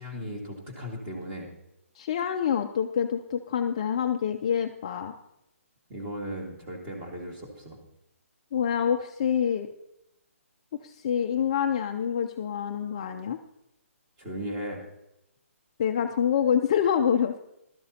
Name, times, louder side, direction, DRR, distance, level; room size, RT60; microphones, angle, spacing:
voice 1, 0.0-1.5 5.9-7.8 14.2-14.8, equal, 15° right, 0 dB, 1.9 m, -36 dB
voice 2, 1.9-5.1 8.5-9.7 10.8-13.4 15.8-17.4, left 8 dB, 25° left, 5 dB, 0.4 m, -26 dB
16.0 x 12.5 x 2.8 m, 0.84 s
hypercardioid pair, 170°, 8 cm